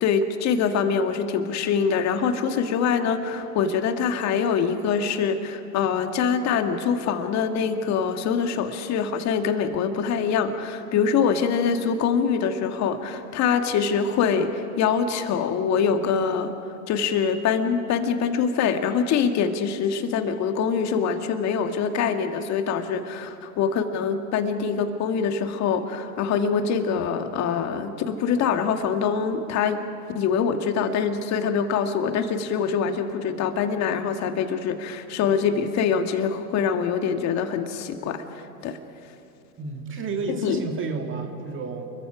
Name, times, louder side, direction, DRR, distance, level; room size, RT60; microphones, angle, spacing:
voice 1, 0.0-16.5 16.9-29.8 30.2-38.2 38.6-38.8 40.4-40.6, left 6 dB, 35° left, 6 dB, 1.9 m, -24 dB
voice 2, 39.6-41.9, right 4 dB, 25° right, 3 dB, 2.1 m, -31 dB
30.0 x 22.0 x 5.0 m, 2.9 s
hypercardioid pair, 100°, 46 cm